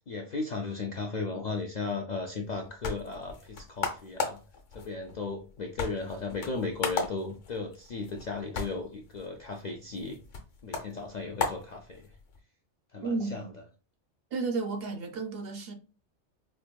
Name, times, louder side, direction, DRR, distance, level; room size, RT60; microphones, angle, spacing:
voice 1, 0.1-4.4 4.7-10.2 10.6-12.1 12.9-13.4, left 3 dB, 60° left, 0.4 m, -36 dB
sound 1, 2.4-12.4, left 5 dB, 80° left, 1.2 m, -38 dB
voice 2, 13.0-13.5 14.3-15.7, right 3 dB, 60° right, 0.8 m, -32 dB
4.5 x 2.5 x 2.2 m
omnidirectional pair, 1.2 m